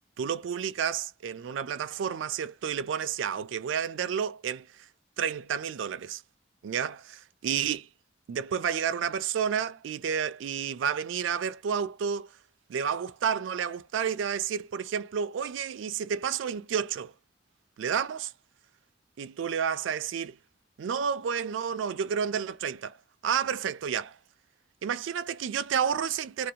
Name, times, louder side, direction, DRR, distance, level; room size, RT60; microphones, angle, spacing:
voice 1, 0.2-4.7 5.2-6.2 6.6-7.9 8.3-12.3 12.7-17.1 17.8-18.3 19.2-20.3 20.8-23.0 23.2-24.2 24.8-26.5, right 7 dB, 90° right, 0.4 m, -30 dB
2.5 x 2.0 x 2.8 m
head